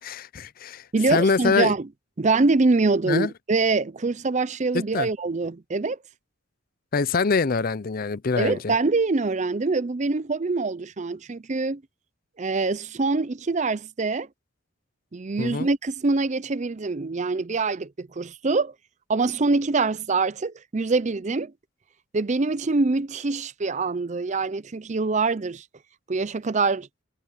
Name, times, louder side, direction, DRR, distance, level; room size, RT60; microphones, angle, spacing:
voice 1, 0.0-1.7 3.0-3.3 4.7-5.1 6.9-8.7 15.4-15.7, left 4 dB, 45° left, 0.5 m, -24 dB
voice 2, 0.9-1.9 2.2-6.0 8.4-11.8 12.4-14.3 15.1-18.7 19.1-21.5 22.1-25.6 26.1-26.9, right 3 dB, 35° right, 0.5 m, -24 dB
head